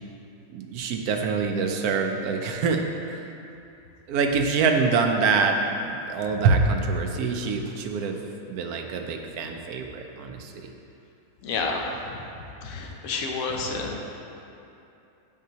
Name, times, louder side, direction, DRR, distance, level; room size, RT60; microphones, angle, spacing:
voice 1, 0.5-2.8 3.1-3.3 4.1-8.2 8.5-10.7, right 4 dB, 85° right, 4 dB, 1.1 m, -25 dB
voice 2, 11.4-11.8 12.6-14.0, left 4 dB, 75° left, 1 dB, 1.1 m, -29 dB
7.3 x 5.7 x 2.8 m, 2.8 s
omnidirectional pair, 1.6 m